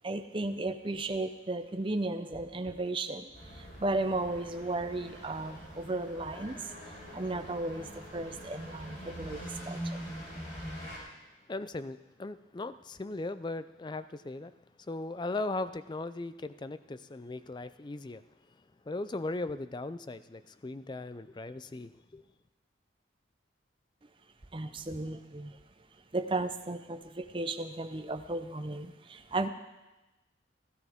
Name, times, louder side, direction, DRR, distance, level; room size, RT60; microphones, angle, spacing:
voice 1, 0.0-3.2 3.8-6.6 7.1-9.4 9.7-9.8 24.5-25.5 26.1-29.5, right 2 dB, 25° right, 8 dB, 0.7 m, -34 dB
sound 1, 3.3-11.0, equal, 40° left, 4.2 m, -44 dB
voice 2, 11.5-14.5 14.9-18.2 18.9-22.2, left 2 dB, 25° left, 13 dB, 0.4 m, -38 dB
16.5 x 14.0 x 3.6 m, 1.1 s
head